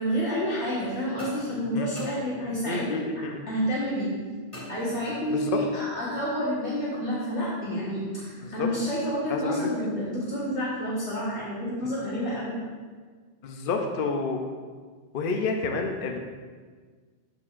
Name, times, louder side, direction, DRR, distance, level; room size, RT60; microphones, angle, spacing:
voice 1, 0.0-4.1 4.7-12.6, equal, 75° left, -8 dB, 1.7 m, -29 dB
sound 1, 1.2-2.8 4.5-5.5, left 1 dB, 30° left, 2.2 m, -44 dB
voice 2, 2.7-3.4 5.3-5.6 8.4-8.7 9.3-9.7 13.4-14.4 15.1-16.2, left 4 dB, 60° left, 3 dB, 0.8 m, -29 dB
13.0 x 4.6 x 2.5 m, 1.5 s
omnidirectional pair, 1.2 m